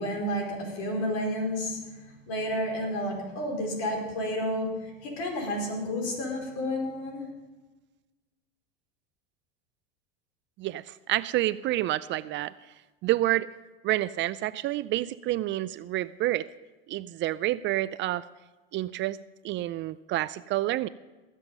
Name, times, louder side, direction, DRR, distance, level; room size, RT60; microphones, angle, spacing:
voice 1, 0.0-7.2, equal, 60° left, 1 dB, 4.8 m, -31 dB
voice 2, 10.6-12.5 13.0-13.5 13.8-16.4 16.9-18.2 18.7-19.2 19.4-20.9, right 15 dB, 40° right, 16 dB, 0.4 m, -28 dB
18.5 x 8.2 x 5.4 m, 1.2 s
supercardioid pair, 105°, 30 cm